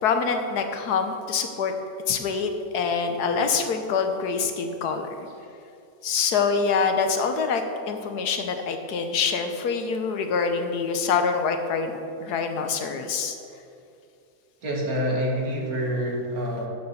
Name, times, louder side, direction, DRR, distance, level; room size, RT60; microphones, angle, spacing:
voice 1, 0.0-1.7 2.1-5.3 6.0-13.4, left 5 dB, 85° left, 6 dB, 1.5 m, -25 dB
voice 2, 14.6-16.7, equal, 70° right, -2 dB, 2.4 m, -27 dB
9.9 x 7.1 x 7.0 m, 2.5 s
omnidirectional pair, 1.6 m